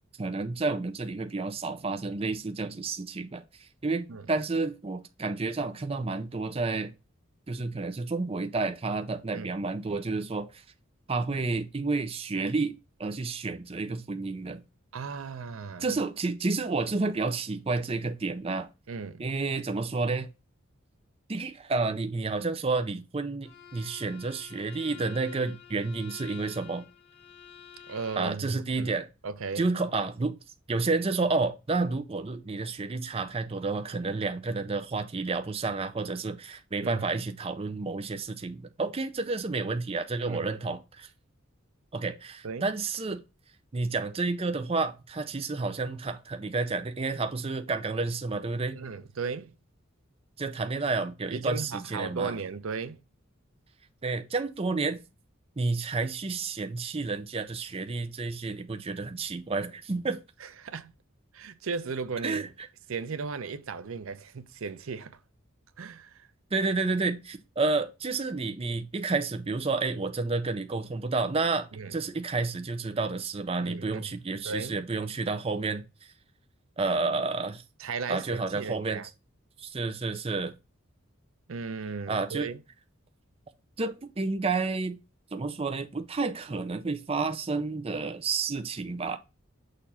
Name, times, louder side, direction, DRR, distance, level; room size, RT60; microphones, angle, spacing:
voice 1, 0.2-6.9 7.5-10.6 11.1-12.7 13.0-14.6 15.8-18.7 19.2-20.3 21.3-26.8 28.2-29.1 29.6-30.4 30.7-41.1 41.9-43.2 43.7-48.8 50.4-52.3 54.0-55.0 55.6-60.2 62.2-62.5 66.5-75.8 76.8-77.6 78.1-79.0 79.6-80.5 82.1-82.5 83.8-85.0 85.3-89.2, right 3 dB, 30° right, 0.5 m, -30 dB
voice 2, 14.9-15.9 18.9-19.3 27.9-28.9 29.2-29.7 36.8-37.1 40.2-40.5 42.4-42.7 48.7-49.5 51.3-53.0 60.4-60.9 61.3-62.5 62.9-65.2 65.8-66.3 71.7-72.0 73.6-74.1 74.4-74.8 77.8-79.1 81.5-82.6, right 5 dB, 80° right, 0.6 m, -36 dB
Bowed string instrument, 23.4-28.4, left 8 dB, 55° left, 1.3 m, -49 dB
6.6 x 2.6 x 5.6 m
head